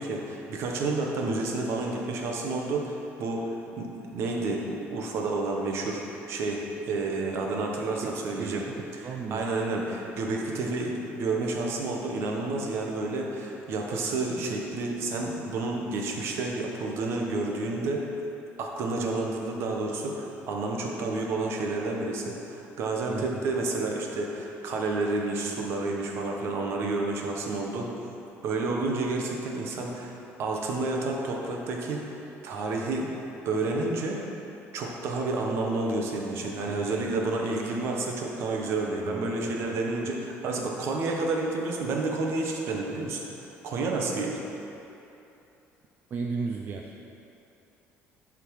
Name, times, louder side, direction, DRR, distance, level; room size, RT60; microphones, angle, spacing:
voice 1, 0.0-6.0 6.3-8.6 9.1-18.0 18.6-27.9 28.4-32.2 32.4-33.1 33.4-34.2 34.7-43.2 43.6-44.4, right 3 dB, 60° right, 0 dB, 1.0 m, -30 dB
voice 2, 8.0-9.5 23.1-23.4 36.7-37.2 39.0-40.1 46.1-47.1, right 5 dB, 35° right, 1 dB, 0.4 m, -36 dB
10.5 x 3.7 x 4.8 m, 2.9 s
cardioid pair, 145°, 5 cm